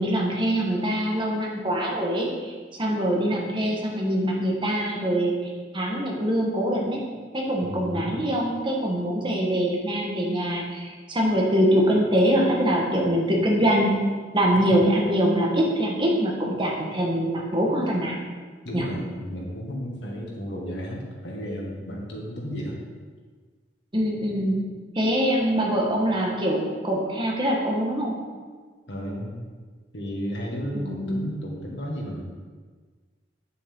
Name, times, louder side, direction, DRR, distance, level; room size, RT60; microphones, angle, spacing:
voice 1, 0.0-5.3 5.7-7.0 7.3-14.1 14.3-18.2 18.7-18.9 23.9-24.7 24.9-28.1 30.7-31.2, equal, 30° right, -2 dB, 1.4 m, -24 dB
voice 2, 7.6-8.2 14.6-14.8 18.6-22.8 28.9-29.5 29.9-32.3, equal, 75° left, -2 dB, 1.8 m, -33 dB
8.6 x 6.8 x 3.7 m, 1.5 s
head